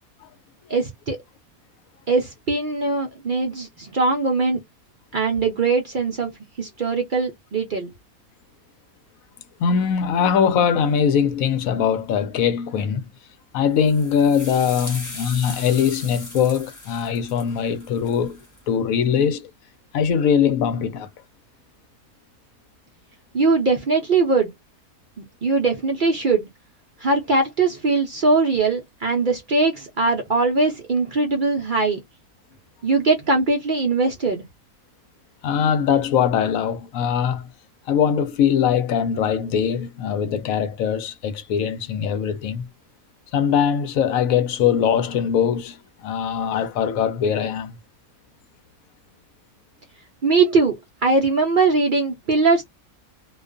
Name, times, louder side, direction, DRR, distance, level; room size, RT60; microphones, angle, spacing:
voice 1, 0.7-1.2 2.1-4.6 5.1-6.3 6.6-7.9 23.3-24.5 25.2-26.5 27.0-32.0 32.8-34.4 50.2-52.6, right 3 dB, 60° right, 0.5 m, -21 dB
voice 2, 9.6-13.1 13.5-18.4 18.7-19.5 19.9-21.1 35.4-37.5 37.9-42.7 43.3-47.8, left 7 dB, 75° left, 1.0 m, -21 dB
sound 1, 13.7-18.6, left 1 dB, 15° left, 0.7 m, -38 dB
2.5 x 2.2 x 2.4 m
omnidirectional pair, 1.5 m